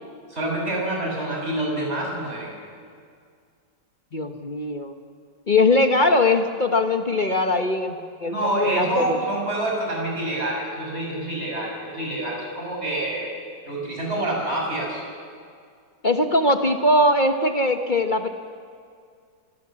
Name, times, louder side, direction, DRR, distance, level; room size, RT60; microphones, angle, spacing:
voice 1, 0.3-2.5 8.2-13.3 13.7-15.0, right 1 dB, 30° right, -1 dB, 6.3 m, -27 dB
voice 2, 4.1-4.9 5.5-9.2 16.0-18.3, left 2 dB, 30° left, 6 dB, 1.0 m, -21 dB
27.0 x 19.5 x 7.5 m, 2.2 s
omnidirectional pair, 2.1 m